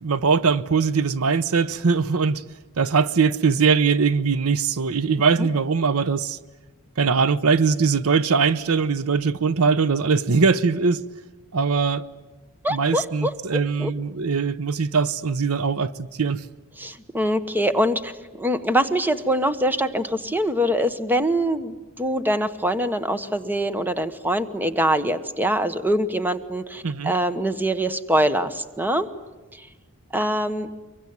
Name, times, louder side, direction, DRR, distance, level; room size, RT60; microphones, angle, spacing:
voice 1, 0.0-2.4 2.8-6.4 7.0-11.0 11.5-12.0 12.7-15.9 16.2-16.4 26.8-27.1, right 5 dB, 75° right, 0.8 m, -21 dB
voice 2, 12.6-13.9 16.8-29.1 29.5-29.7 30.1-30.7, right 1 dB, 10° right, 1.1 m, -24 dB
24.5 x 23.0 x 9.5 m
head